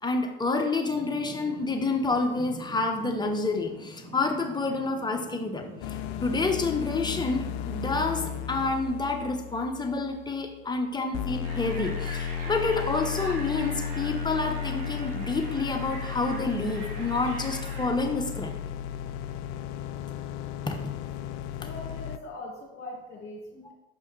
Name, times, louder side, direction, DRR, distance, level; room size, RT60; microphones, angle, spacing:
voice 1, 0.0-18.5 20.7-20.9, left 3 dB, 15° left, 3 dB, 1.0 m, -29 dB
sound 1, 0.8-8.7, right 1 dB, 75° right, 1.9 m, -44 dB
sound 2, 5.8-10.8 11.1-22.2, left 9 dB, 60° left, 0.5 m, -35 dB
sound 3, 11.4-17.9, right 2 dB, 55° right, 1.8 m, -42 dB
voice 2, 21.6-23.7, left 2 dB, 40° left, -5 dB, 1.9 m, -41 dB
6.1 x 5.4 x 3.3 m, 0.94 s
hypercardioid pair, 80°, 32 cm